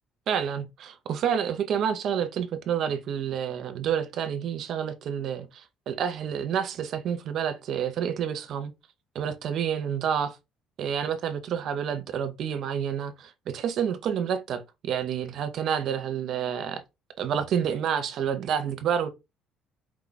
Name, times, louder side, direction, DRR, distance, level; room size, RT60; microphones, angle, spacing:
voice 1, 0.3-8.7 9.1-10.3 10.8-16.8 17.2-19.1, right 8 dB, 55° right, 0.7 m, -29 dB
4.7 x 2.3 x 3.9 m
cardioid pair, 135°, 0 cm